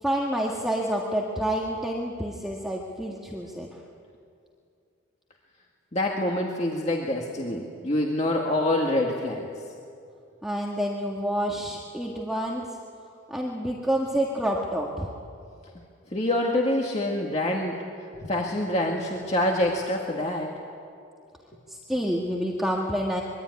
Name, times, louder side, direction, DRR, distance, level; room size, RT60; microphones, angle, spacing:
voice 1, 0.0-3.8 10.4-12.8 13.3-15.1 21.7-23.2, equal, ahead, -3 dB, 1.8 m, -28 dB
voice 2, 5.9-9.5 16.1-17.8 18.2-20.5, left 1 dB, 35° left, -1 dB, 1.9 m, -26 dB
25.0 x 23.0 x 9.7 m, 2.4 s
head